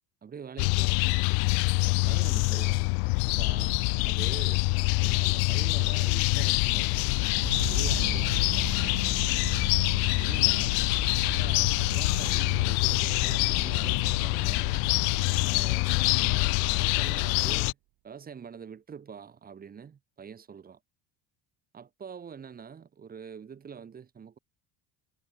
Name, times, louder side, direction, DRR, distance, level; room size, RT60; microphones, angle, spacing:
voice 1, 0.2-1.2 1.8-2.8 3.2-7.3 7.7-9.2 10.2-10.9 11.2-14.7 15.3-17.8 18.0-20.8 21.7-24.4, right 7 dB, 25° right, 3.3 m, -45 dB
sound 1, 0.6-17.7, left 40 dB or more, 80° left, 0.8 m, -25 dB
sound 2, 7.3-16.9, right 20 dB, 55° right, 1.8 m, -40 dB
cardioid pair, 155°, 37 cm